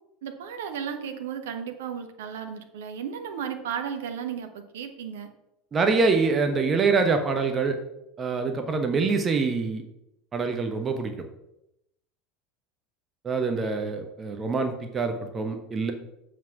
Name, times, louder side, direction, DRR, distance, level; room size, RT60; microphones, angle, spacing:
voice 1, 0.2-5.3, right 7 dB, 70° right, 6 dB, 1.0 m, -34 dB
voice 2, 5.7-7.8 8.2-9.8 10.3-11.1 13.2-15.9, right 4 dB, 30° right, 6 dB, 1.2 m, -25 dB
7.3 x 6.0 x 5.9 m, 0.85 s
figure-of-eight pair, 75°, 0 cm